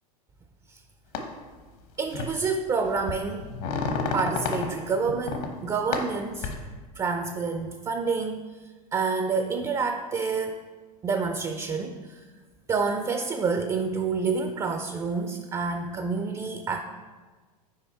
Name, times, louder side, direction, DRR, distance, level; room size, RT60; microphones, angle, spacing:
sound 1, 1.1-1.2 2.1-2.4 2.8-4.7 5.1-5.5 5.9-6.6, left 5 dB, 60° left, 1.0 m, -29 dB
voice 1, 2.0-3.5 4.1-6.5 6.9-8.4 8.9-10.6 11.0-12.2 12.7-16.8, right 4 dB, 15° right, 7 dB, 0.3 m, -28 dB
5.7 x 4.7 x 4.2 m, 1.4 s
hypercardioid pair, 105°, 20 cm